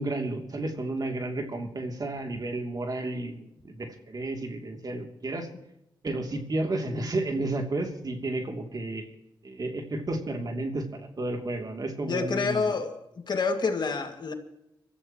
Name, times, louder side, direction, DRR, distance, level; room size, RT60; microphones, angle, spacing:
voice 1, 0.0-5.5 6.0-9.1 9.4-12.7, right 2 dB, 50° right, 3 dB, 2.9 m, -32 dB
voice 2, 12.1-13.0 13.3-14.3, left 4 dB, 60° left, 5 dB, 2.2 m, -27 dB
24.5 x 14.0 x 3.1 m, 0.83 s
cardioid pair, 55°, 8 cm